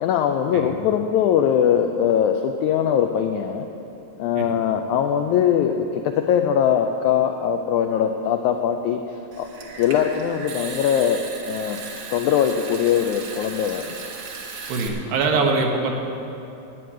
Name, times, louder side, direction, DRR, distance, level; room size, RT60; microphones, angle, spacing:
voice 1, 0.0-3.7 4.2-9.5 9.8-11.2 11.5-11.8 12.1-13.9, left 8 dB, 85° left, 5 dB, 1.7 m, -21 dB
Water tap faucet / Sink (filling or washing) / Trickle dribble, 9.3-14.9, right 4 dB, 55° right, 1.6 m, -36 dB
voice 2, 14.7-15.9, right 4 dB, 80° right, 2 dB, 3.1 m, -23 dB
11.0 x 9.3 x 8.7 m, 2.9 s
omnidirectional pair, 4.0 m